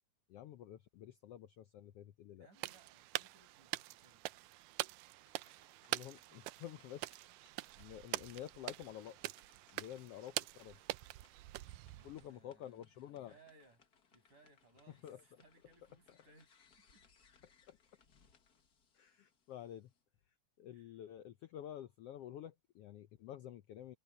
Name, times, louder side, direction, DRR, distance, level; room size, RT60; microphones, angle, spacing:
voice 1, 0.3-2.5 5.9-7.1 7.8-9.2 9.7-10.8 12.0-13.3 15.0-15.2 17.7-17.8 18.9-19.9 20.6-24.0, left 11 dB, 80° left, 1.3 m, -50 dB
voice 2, 2.4-4.4 11.9-17.0 19.1-19.2 20.7-21.0, right 3 dB, 75° right, 8.8 m, -67 dB
sound 1, 2.6-12.3, right 18 dB, 90° right, 2.2 m, -45 dB
sound 2, 5.2-20.0, left 6 dB, 40° left, 1.6 m, -72 dB
omnidirectional pair, 3.6 m